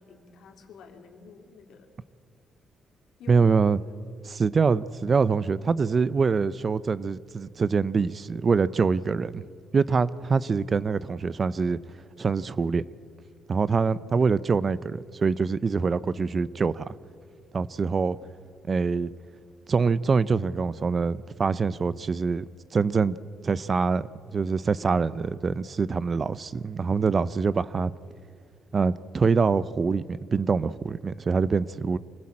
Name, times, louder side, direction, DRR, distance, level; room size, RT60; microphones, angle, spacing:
voice 1, 0.0-1.9 3.2-3.6, left 5 dB, 80° left, 2.7 m, -49 dB
voice 2, 3.3-3.8 4.2-9.5 9.7-11.8 12.2-12.8 13.5-16.8 17.5-18.2 18.7-19.1 19.7-22.5 22.7-23.2 23.4-24.1 24.3-27.9 28.7-32.0, right 5 dB, 40° right, 0.6 m, -24 dB
25.0 x 16.0 x 8.7 m
cardioid pair, 90°, 0 cm